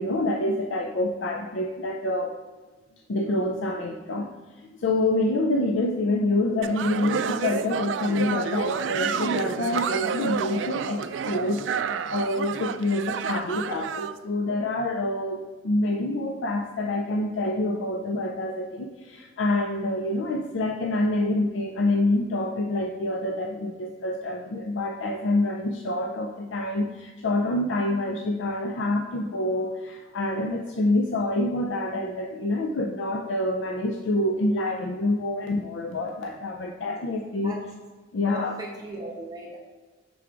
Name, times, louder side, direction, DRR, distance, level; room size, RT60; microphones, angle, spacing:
voice 1, 0.0-2.3 3.1-4.3 4.8-37.5 38.1-38.6, left 2 dB, 85° left, 3 dB, 0.4 m, -27 dB
sound 1, 6.6-14.1, right 6 dB, 80° right, 0.3 m, -30 dB
voice 2, 38.2-39.6, right 1 dB, 20° right, -3 dB, 1.0 m, -37 dB
6.1 x 3.7 x 4.6 m, 1.3 s
head